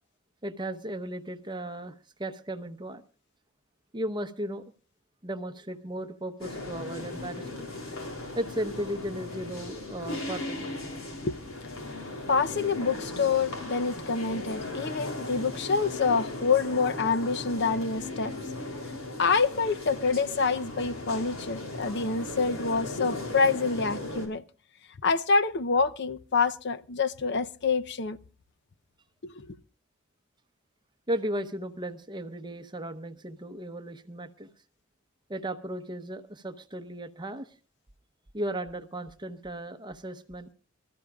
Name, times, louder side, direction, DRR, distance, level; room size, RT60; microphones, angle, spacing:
voice 1, 0.4-3.0 3.9-4.6 5.2-7.7 8.4-10.7 31.1-34.5 35.3-37.5 38.3-40.5, right 1 dB, 20° right, 0.9 m, -35 dB
sound 1, 6.4-24.3, left 2 dB, 90° left, 4.1 m, -37 dB
voice 2, 12.3-18.3 19.2-24.4 25.0-28.2 29.2-29.6, left 4 dB, 55° left, 0.7 m, -27 dB
25.5 x 14.0 x 2.4 m
head